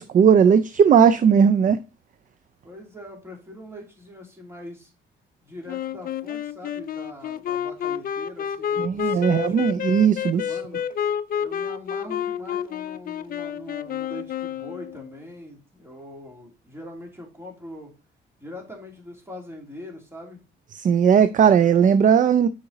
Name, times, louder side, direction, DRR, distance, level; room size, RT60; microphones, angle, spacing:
voice 1, 0.0-1.8 8.8-10.6 20.8-22.5, right 7 dB, 40° right, 0.4 m, -17 dB
voice 2, 2.6-4.9 5.4-9.7 10.4-10.9 11.4-17.9 18.4-20.4 21.4-21.7, left 1 dB, 10° right, 2.8 m, -42 dB
Wind instrument woodwind instrument, 5.7-15.1, left 9 dB, 45° left, 0.4 m, -29 dB
6.9 x 5.1 x 3.9 m
cardioid pair, 90°, 20 cm